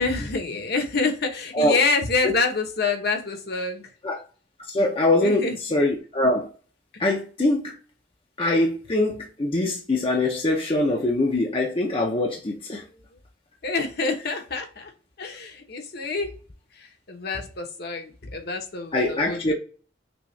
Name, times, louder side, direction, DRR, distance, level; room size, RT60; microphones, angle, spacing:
voice 1, 0.0-3.9 5.2-5.6 13.6-14.9 15.2-16.3 16.7-19.5, left 3 dB, 55° left, 1.0 m, -27 dB
voice 2, 4.7-6.5 7.0-7.8 8.4-12.8 18.9-19.5, left 2 dB, 30° left, 0.6 m, -23 dB
6.1 x 2.4 x 3.1 m
head